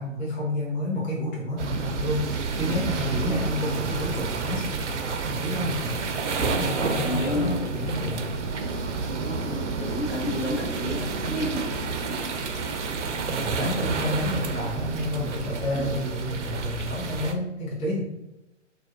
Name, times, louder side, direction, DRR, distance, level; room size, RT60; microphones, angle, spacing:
voice 1, 0.0-8.2 13.2-18.0, left 1 dB, 20° left, -6 dB, 0.8 m, -30 dB
sound 1, 1.6-17.3, right 4 dB, 70° right, 0.5 m, -30 dB
voice 2, 2.6-3.5 6.4-6.7 7.0-7.7 9.1-11.8 12.1-12.3 13.6-14.0 15.7-15.9, left 1 dB, 65° left, -1 dB, 0.9 m, -32 dB
sound 2, 5.6-16.2, right 1 dB, 20° right, 0.4 m, -40 dB
2.6 x 2.1 x 3.8 m, 0.94 s
figure-of-eight pair, 130°, 37 cm